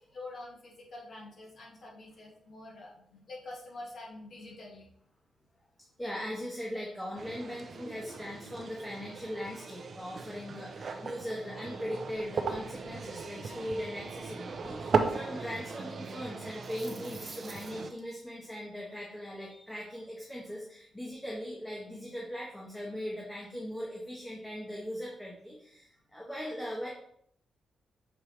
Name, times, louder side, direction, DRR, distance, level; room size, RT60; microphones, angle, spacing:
voice 1, 0.1-4.9, left 2 dB, 50° left, -4 dB, 2.5 m, -46 dB
voice 2, 6.0-26.9, equal, 5° left, -4 dB, 1.3 m, -39 dB
sound 1, 7.2-17.9, right 4 dB, 50° right, 0.7 m, -37 dB
sound 2, 16.5-18.0, right 3 dB, 25° right, 1.2 m, -49 dB
7.0 x 4.7 x 3.3 m, 0.68 s
cardioid pair, 110°, 0 cm